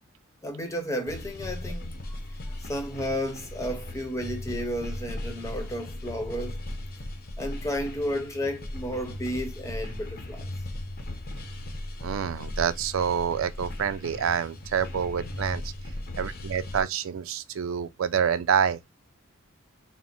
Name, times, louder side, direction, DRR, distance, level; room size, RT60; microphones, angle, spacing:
voice 1, 0.4-6.6 7.4-10.5, equal, 15° left, 0.9 m, -33 dB
sound 1, 1.1-16.8, left 1 dB, 50° left, 0.8 m, -37 dB
voice 2, 12.0-15.6 16.2-18.8, right 7 dB, 90° right, 0.4 m, -27 dB
4.3 x 2.1 x 4.3 m
head